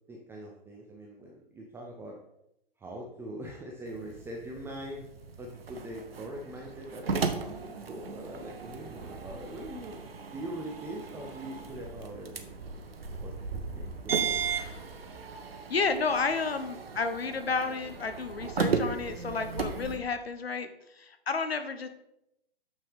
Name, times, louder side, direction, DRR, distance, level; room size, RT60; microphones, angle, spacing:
voice 1, 0.1-2.2 2.8-5.1 5.4-10.0 10.3-12.5 13.1-14.5, right 1 dB, 10° right, 0 dB, 0.5 m, -42 dB
sound 1, 3.8-20.0, right 5 dB, 75° right, 1.0 m, -36 dB
voice 2, 15.7-20.7 20.9-21.9, left 4 dB, 85° left, 8 dB, 0.8 m, -31 dB
6.7 x 6.2 x 3.6 m, 0.83 s
figure-of-eight pair, 115°, 30 cm